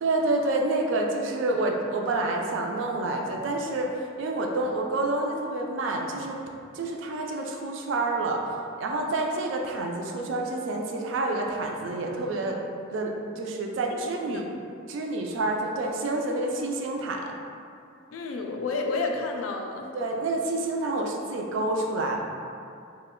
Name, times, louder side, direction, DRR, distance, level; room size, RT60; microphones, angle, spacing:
voice 1, 0.0-3.9 4.2-6.4 6.7-8.4 8.8-12.6 12.9-14.4 14.9-17.3 19.9-22.2, right 2 dB, 65° right, 1 dB, 0.3 m, -28 dB
voice 2, 18.1-19.9, left 3 dB, 85° left, 2 dB, 0.3 m, -30 dB
2.3 x 2.1 x 3.6 m, 2.4 s
head